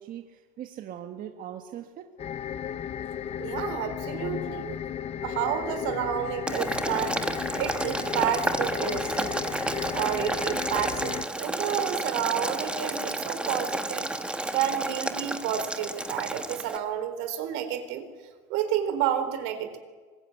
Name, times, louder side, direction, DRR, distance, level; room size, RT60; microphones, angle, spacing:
voice 1, 0.0-2.1, right 10 dB, 40° right, 5 dB, 1.5 m, -40 dB
sound 1, 2.2-11.3, left 9 dB, 30° left, 0.7 m, -34 dB
voice 2, 3.4-7.2 7.6-9.4 9.9-14.1 14.5-18.1 18.5-19.8, right 10 dB, 75° right, 9 dB, 4.2 m, -30 dB
Boiling, 6.5-16.8, right 1 dB, 5° right, 1.3 m, -31 dB
24.0 x 22.0 x 9.4 m, 1.4 s
cardioid pair, 165°, 21 cm